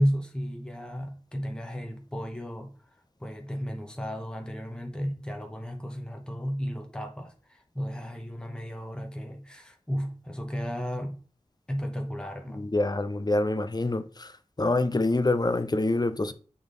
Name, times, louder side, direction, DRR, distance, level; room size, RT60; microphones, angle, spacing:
voice 1, 0.0-2.7 3.2-11.2 11.7-12.7, equal, 5° left, 1.0 m, -33 dB
voice 2, 12.6-14.3 14.6-16.3, left 2 dB, 30° left, 0.6 m, -26 dB
7.0 x 3.5 x 3.9 m
wide cardioid pair, 45°, 13 cm